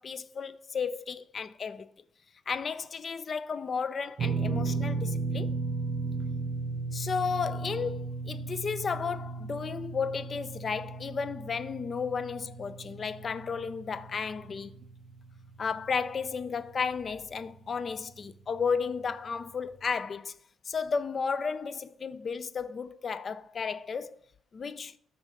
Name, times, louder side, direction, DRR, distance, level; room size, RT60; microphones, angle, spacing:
voice 1, 0.0-1.9 2.5-5.6 6.9-14.7 15.6-20.4 20.7-24.2 24.5-24.9, left 5 dB, 45° left, 0.4 m, -33 dB
sound 1, 4.2-16.4 16.7-16.9 18.6-18.7, right 4 dB, 60° right, 0.5 m, -35 dB
6.0 x 4.2 x 5.0 m
cardioid pair, 90°, 0 cm